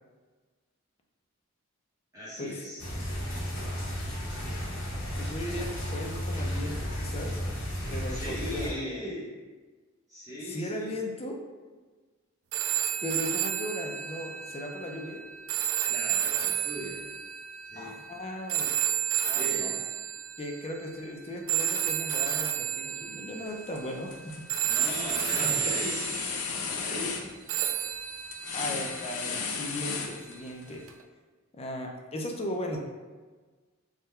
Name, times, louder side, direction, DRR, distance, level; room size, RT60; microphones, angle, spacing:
voice 1, 2.1-2.9 8.1-9.3 10.1-11.0 15.9-17.0 17.7-18.0 19.3-19.7 24.6-27.4, equal, 15° right, -10 dB, 0.8 m, -39 dB
sound 1, 2.8-8.7, equal, 65° left, 1.1 m, -33 dB
voice 2, 5.2-7.4 7.9-9.0 10.4-11.4 13.0-15.2 17.7-18.7 19.2-19.8 20.4-24.3 25.3-25.7 28.5-30.9 31.5-32.8, left 1 dB, 30° left, 1 dB, 0.5 m, -37 dB
sound 2, 12.5-20.7 21.5-24.2 24.5-26.6 27.5-29.7 30.9-31.0, right 10 dB, 65° right, 0.3 m, -31 dB
sound 3, 23.5-23.8 24.1-30.6, left 5 dB, 90° left, 0.5 m, -35 dB
3.6 x 2.2 x 4.2 m, 1.4 s
head